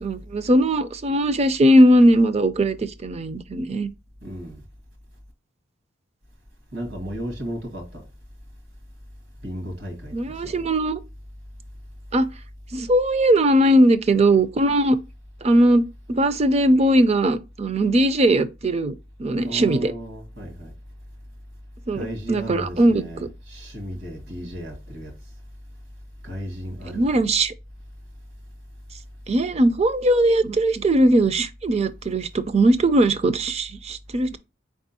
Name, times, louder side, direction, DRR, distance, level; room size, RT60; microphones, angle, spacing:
voice 1, 0.0-3.9 10.1-11.0 12.1-12.3 12.7-15.0 15.4-19.9 21.9-23.0 26.9-27.5 29.3-34.4, right 1 dB, 35° right, 0.4 m, -19 dB
voice 2, 4.2-4.6 6.7-8.1 9.4-10.7 19.4-20.7 21.9-25.1 26.2-27.2, equal, 80° right, 1.9 m, -34 dB
4.7 x 3.5 x 2.6 m
head